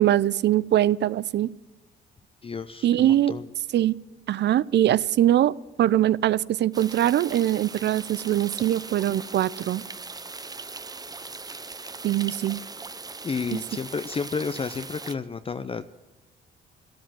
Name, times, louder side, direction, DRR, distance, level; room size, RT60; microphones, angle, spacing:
voice 1, 0.0-1.5 2.8-3.3 3.7-3.9 4.3-9.8 12.0-12.6 13.5-13.6, right 12 dB, 60° right, 20 dB, 0.5 m, -22 dB
voice 2, 2.4-3.5 13.2-15.8, left 5 dB, 30° left, 10 dB, 0.6 m, -31 dB
sound 1, 6.7-15.1, right 3 dB, 20° right, 0.7 m, -39 dB
13.0 x 13.0 x 7.5 m, 1.1 s
cardioid pair, 90°, 20 cm